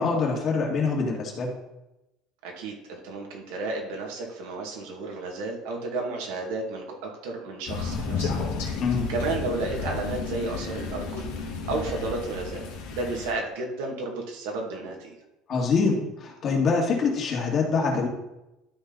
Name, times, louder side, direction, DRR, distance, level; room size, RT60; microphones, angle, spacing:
voice 1, 0.0-1.5 8.8-9.1 15.5-18.1, left 4 dB, 40° left, -1 dB, 2.4 m, -25 dB
voice 2, 2.4-8.5 9.1-11.3 11.7-12.6 12.9-15.1, right 3 dB, 85° right, 0 dB, 2.1 m, -32 dB
Crow, 7.7-13.3, left 5 dB, 85° left, 2.0 m, -32 dB
12.0 x 4.4 x 4.0 m, 0.95 s
cardioid pair, 140°, 0 cm